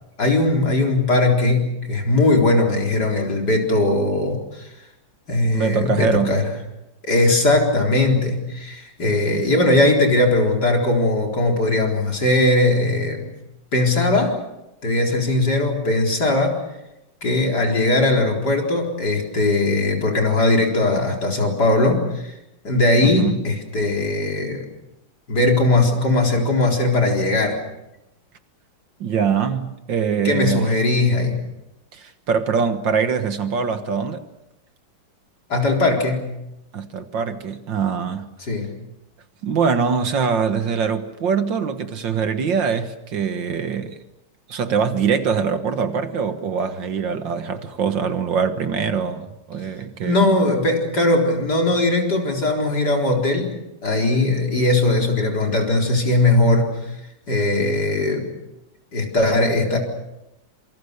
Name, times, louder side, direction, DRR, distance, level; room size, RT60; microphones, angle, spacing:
voice 1, 0.2-4.7 5.3-6.4 7.1-13.3 13.7-14.4 14.8-16.6 17.2-22.3 22.6-24.7 25.3-27.6 30.2-31.4 35.5-36.3 38.4-38.7 50.0-53.5 53.8-56.8 57.3-58.3 58.9-59.8, left 2 dB, 50° left, 4.7 m, -19 dB
voice 2, 5.5-6.4 9.0-9.5 23.0-23.4 29.0-30.7 31.9-34.2 36.7-38.3 39.4-44.0 44.5-50.2, right 6 dB, 65° right, 2.1 m, -23 dB
27.0 x 25.0 x 6.7 m
omnidirectional pair, 2.2 m